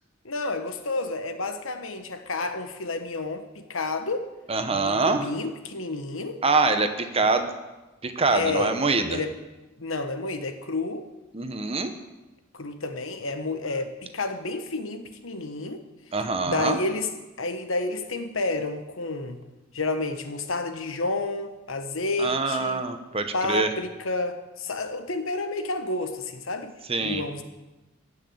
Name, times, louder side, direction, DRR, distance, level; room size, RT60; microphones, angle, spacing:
voice 1, 0.2-4.3 4.7-6.4 7.2-7.4 8.3-8.7 9.1-9.3 9.8-11.1 12.5-15.8 16.4-17.1 17.4-19.4 19.7-22.8 23.3-26.7 27.0-27.4, left 2 dB, 80° left, 8 dB, 1.3 m, -30 dB
voice 2, 4.5-5.2 6.4-7.5 8.0-9.2 11.3-11.9 16.1-16.8 22.2-23.7 26.9-27.2, right 3 dB, 30° right, 8 dB, 1.0 m, -24 dB
15.0 x 6.4 x 8.7 m, 1.1 s
head